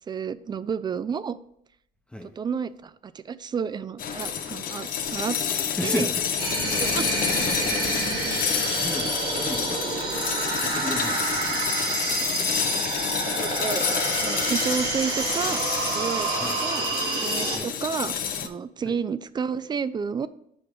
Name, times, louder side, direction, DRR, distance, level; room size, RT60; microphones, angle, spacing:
voice 1, 0.1-1.4 2.2-5.4 5.8-6.1 6.8-7.1 7.5-7.6 13.4-13.9 14.2-15.6 15.9-16.3 16.6-16.9 17.2-20.3, right 6 dB, 25° right, 16 dB, 0.3 m, -31 dB
sound 1, 4.0-18.5, left 8 dB, 55° left, 0.7 m, -29 dB
voice 2, 5.7-6.2 7.4-7.5 8.8-9.9 10.6-11.6 16.4-16.6 17.5-17.7 18.9-19.0, left 1 dB, 5° left, 3 dB, 0.8 m, -33 dB
sound 2, 6.4-17.6, right 4 dB, 75° right, 1.8 m, -28 dB
5.1 x 4.9 x 6.0 m, 0.73 s
cardioid pair, 110°, 17 cm